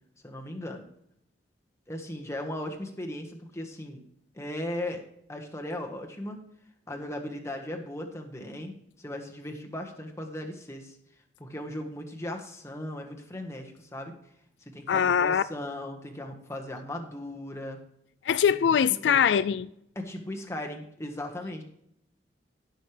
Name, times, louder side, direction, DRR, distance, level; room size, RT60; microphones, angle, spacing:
voice 1, 0.2-0.9 1.9-4.0 4.3-5.0 5.3-6.4 6.9-11.0 11.4-14.1 14.6-17.8 18.8-19.3 19.9-21.6, left 1 dB, 15° left, 1.5 m, -37 dB
voice 2, 14.9-15.4 18.3-19.7, left 7 dB, 80° left, 0.4 m, -22 dB
16.5 x 6.5 x 3.4 m
head